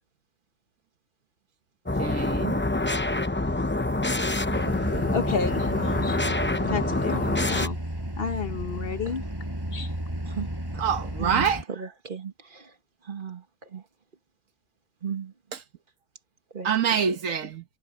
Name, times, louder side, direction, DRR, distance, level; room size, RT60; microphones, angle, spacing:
sound 1, 1.9-7.7, left 2 dB, 15° left, 0.5 m, -26 dB
voice 1, 2.0-2.6 10.8-11.6 16.6-17.6, right 7 dB, 80° right, 1.6 m, -25 dB
sound 2, 4.5-11.6, right 1 dB, 15° right, 5.1 m, -33 dB
voice 2, 5.1-6.2 6.6-7.8 8.2-9.3 9.7-9.9, left 6 dB, 50° left, 1.1 m, -31 dB
voice 3, 11.2-12.7 13.1-13.4 13.7-13.8 15.0-15.3 16.5-17.0, right 6 dB, 40° right, 1.7 m, -35 dB
omnidirectional pair, 1.3 m